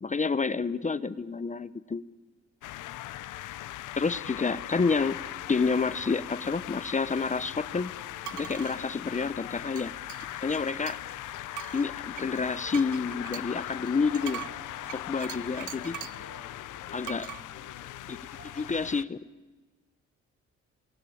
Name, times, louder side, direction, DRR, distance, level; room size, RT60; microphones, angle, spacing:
voice 1, 0.0-2.0 3.9-5.2 5.5-7.9 8.3-9.9 10.4-11.0 11.7-14.4 14.9-16.0 16.9-17.3 18.1-18.2 18.4-19.2, left 4 dB, 25° left, 17 dB, 0.9 m, -29 dB
sound 1, 2.6-19.0, left 14 dB, 85° left, 1.0 m, -40 dB
sound 2, 7.2-18.7, right 4 dB, 35° right, 7.7 m, -57 dB
sound 3, 8.2-8.8 9.8-11.2 11.5-16.3 17.0-17.4, right 13 dB, 75° right, 0.9 m, -42 dB
voice 2, 16.1-17.1 17.5-17.9, left 5 dB, 60° left, 5 dB, 4.4 m, -52 dB
29.5 x 23.0 x 8.7 m, 1.2 s
cardioid pair, 90°, 30 cm